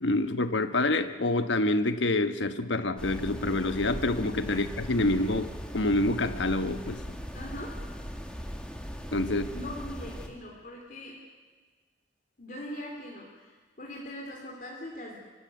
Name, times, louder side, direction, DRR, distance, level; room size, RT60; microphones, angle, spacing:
voice 1, 0.0-5.4 5.7-7.0 9.1-9.5, left 2 dB, 90° left, 10 dB, 1.2 m, -27 dB
sound 1, 3.0-10.3, equal, 5° left, 1.8 m, -39 dB
voice 2, 7.3-7.8 9.3-11.1 12.4-15.2, left 1 dB, 50° left, -1 dB, 3.0 m, -41 dB
24.0 x 15.5 x 9.3 m, 1.4 s
head